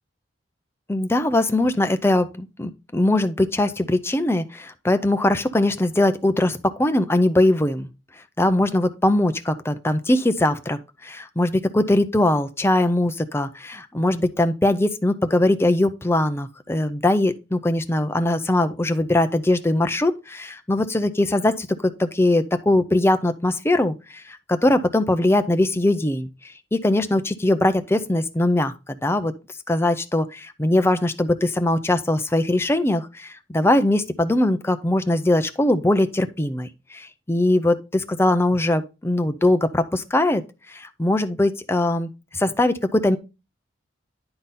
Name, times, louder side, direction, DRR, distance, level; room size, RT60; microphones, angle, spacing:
voice 1, 0.9-7.9 8.4-26.3 26.7-29.3 29.7-40.4 40.7-43.2, left 1 dB, 15° left, 0.5 m, -21 dB
10.0 x 3.9 x 4.0 m
head